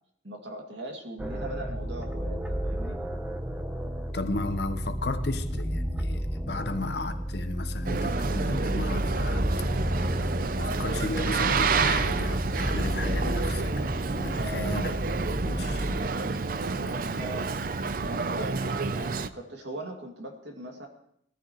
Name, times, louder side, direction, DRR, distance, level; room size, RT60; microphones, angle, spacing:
voice 1, 0.2-3.0 14.3-15.2 16.6-17.6 17.8-20.9, right 1 dB, 65° right, 2.3 m, -40 dB
sound 1, 1.2-16.0, equal, 5° right, 0.8 m, -31 dB
voice 2, 4.1-9.5 10.0-10.2 10.6-13.8 14.2-14.9 15.4-15.9, left 2 dB, 55° left, 1.0 m, -34 dB
Boat Water vehicle, 7.9-19.3, right 4 dB, 45° right, 0.5 m, -29 dB
21.0 x 13.5 x 3.1 m
head